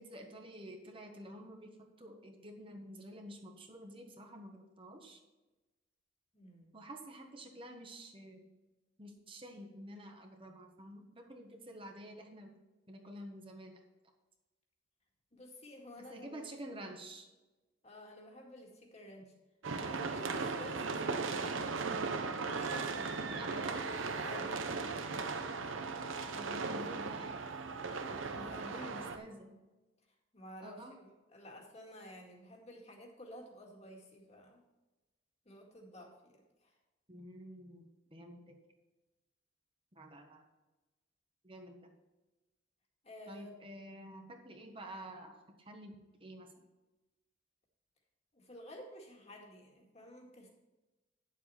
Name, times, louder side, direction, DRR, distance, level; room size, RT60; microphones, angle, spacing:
voice 1, 0.0-5.2 6.7-8.5 9.0-12.6 12.9-13.8 16.0-17.3 23.3-23.9 26.4-27.4 28.4-29.5 30.6-31.0 37.1-38.6 39.9-40.4 41.4-41.9 43.3-45.9 46.2-46.6, equal, 25° right, 3 dB, 1.2 m, -49 dB
voice 2, 6.3-6.7 15.3-16.4 17.8-19.3 19.8-21.8 22.5-23.8 24.2-25.0 28.0-29.4 30.3-34.6 35.5-36.7 43.0-43.5 48.3-50.5, equal, 30° left, 0 dB, 2.0 m, -52 dB
sound 1, 19.6-29.2, right 4 dB, 80° right, 0.9 m, -37 dB
10.5 x 7.5 x 4.2 m, 1.1 s
head